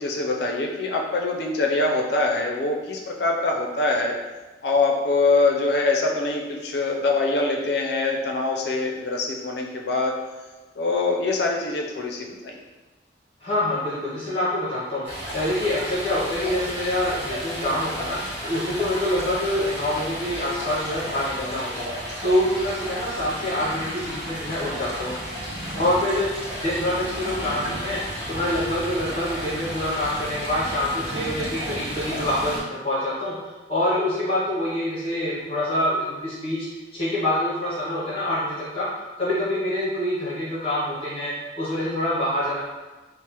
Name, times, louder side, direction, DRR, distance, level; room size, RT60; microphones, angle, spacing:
voice 1, 0.0-4.1 4.6-10.2 10.8-12.6, left 3 dB, 60° left, 0 dB, 0.4 m, -24 dB
voice 2, 13.4-15.0 15.3-21.9 22.2-25.1 25.7-26.3 26.6-28.0 28.3-33.3 33.7-36.7 36.9-38.9 39.2-42.6, left 1 dB, 30° left, -8 dB, 0.7 m, -26 dB
Stream, 15.0-32.6, equal, 10° right, 0.8 m, -33 dB
3.1 x 2.0 x 2.9 m, 1.2 s
head